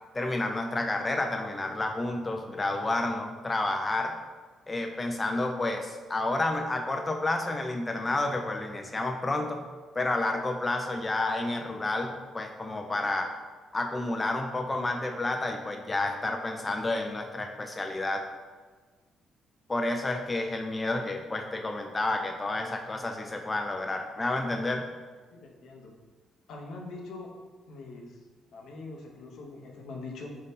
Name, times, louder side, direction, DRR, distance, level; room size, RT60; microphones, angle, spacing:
voice 1, 0.1-4.2 4.7-9.7 9.9-13.4 13.7-18.3 19.7-24.8, left 2 dB, 20° left, 3 dB, 0.3 m, -30 dB
voice 2, 25.3-25.9 26.5-27.3 27.7-28.2 28.5-30.3, left 3 dB, 75° left, 0 dB, 0.6 m, -43 dB
3.6 x 2.6 x 4.0 m, 1.4 s
cardioid pair, 90°, 0 cm